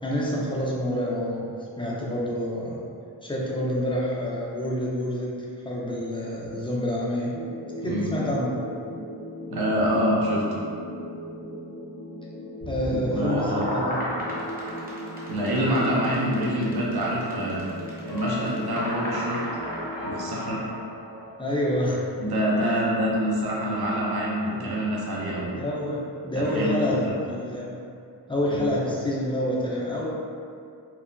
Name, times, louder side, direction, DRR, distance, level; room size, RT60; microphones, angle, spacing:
voice 1, 0.0-1.5 1.8-2.8 3.2-5.3 5.6-7.3 7.8-8.6 12.7-14.1 21.4-22.0 22.6-22.8 24.5-24.7 25.5-27.0 27.3-27.7 28.3-30.1, left 1 dB, 10° left, -5 dB, 0.5 m, -27 dB
sound 1, 7.3-20.4, left 1 dB, 40° left, 0.8 m, -38 dB
voice 2, 9.5-10.5 12.9-13.7 15.3-17.7 18.1-19.4 20.0-20.6 22.2-25.5 26.4-27.1 28.5-28.7, equal, 60° right, -5 dB, 0.7 m, -26 dB
sound 2, 12.6-20.7, equal, 20° right, 0.7 m, -34 dB
sound 3, 18.1-22.4, left 2 dB, 70° left, 0.6 m, -40 dB
2.9 x 2.0 x 2.5 m, 2.4 s
cardioid pair, 65°, 43 cm